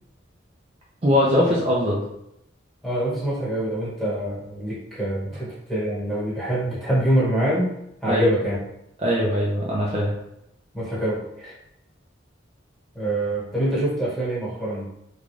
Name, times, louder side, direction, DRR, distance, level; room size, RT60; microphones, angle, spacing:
voice 1, 1.0-2.0 8.1-8.3 9.0-10.1, left 1 dB, 30° right, -4 dB, 0.5 m, -21 dB
voice 2, 2.8-7.7 8.0-8.6 10.7-11.6 12.9-14.9, right 1 dB, ahead, -8 dB, 1.4 m, -25 dB
3.7 x 2.3 x 3.2 m, 0.81 s
head